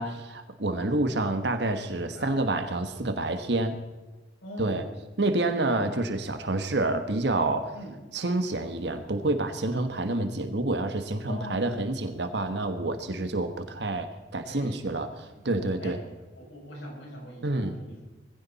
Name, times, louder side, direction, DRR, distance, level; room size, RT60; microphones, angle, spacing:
voice 1, 0.0-3.8 4.6-4.8 5.2-7.7 8.1-15.1 15.4-16.0 17.4-17.7, right 2 dB, 70° right, 8 dB, 1.3 m, -28 dB
voice 2, 4.4-4.9 7.7-8.0 11.3-11.8 14.4-15.5 15.8-16.0 16.3-18.0, equal, 80° left, -1 dB, 6.7 m, -42 dB
20.5 x 15.5 x 4.2 m, 1.2 s
head